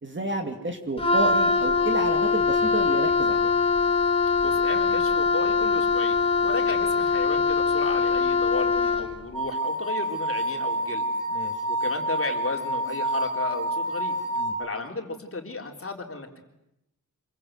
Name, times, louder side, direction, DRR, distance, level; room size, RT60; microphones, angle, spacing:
voice 1, 0.0-3.5 11.3-11.5 14.4-14.6, right 2 dB, 35° right, 4 dB, 2.5 m, -30 dB
Wind instrument woodwind instrument, 1.0-9.1, left 4 dB, 15° left, 2.2 m, -22 dB
voice 2, 4.4-11.1 11.7-14.2 14.6-16.4, left 3 dB, 40° left, 3 dB, 3.6 m, -34 dB
sound 1, 9.3-14.5, right 1 dB, 65° right, 4.7 m, -28 dB
26.5 x 23.0 x 8.0 m, 0.84 s
wide cardioid pair, 130°, 34 cm